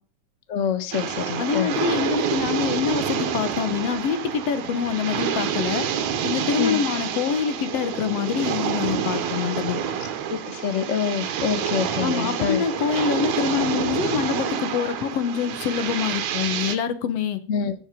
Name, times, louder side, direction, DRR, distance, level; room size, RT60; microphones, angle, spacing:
voice 1, 0.5-1.7 6.6-6.8 10.3-12.6 17.5-17.7, left 7 dB, 45° left, 10 dB, 0.9 m, -26 dB
sound 1, 0.9-16.8, right 8 dB, 75° right, 2.6 m, -28 dB
voice 2, 1.4-5.9 6.2-9.8 12.0-17.4, left 7 dB, 65° left, 11 dB, 1.9 m, -25 dB
16.5 x 7.5 x 5.1 m, 0.42 s
omnidirectional pair, 3.5 m